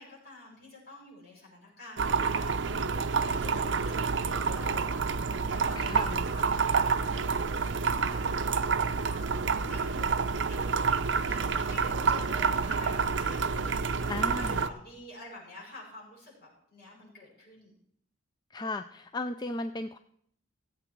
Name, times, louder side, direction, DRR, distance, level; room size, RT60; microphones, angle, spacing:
voice 1, 0.0-2.7 3.2-7.2 7.8-9.3 9.6-17.7, left 1 dB, 50° left, -5 dB, 6.8 m, -48 dB
sound 1, 2.0-14.7, right 5 dB, 65° right, 0.6 m, -28 dB
voice 2, 5.7-6.2 14.1-14.6 18.5-20.0, left 2 dB, 20° left, 9 dB, 0.3 m, -35 dB
17.5 x 8.0 x 4.6 m, 0.68 s
head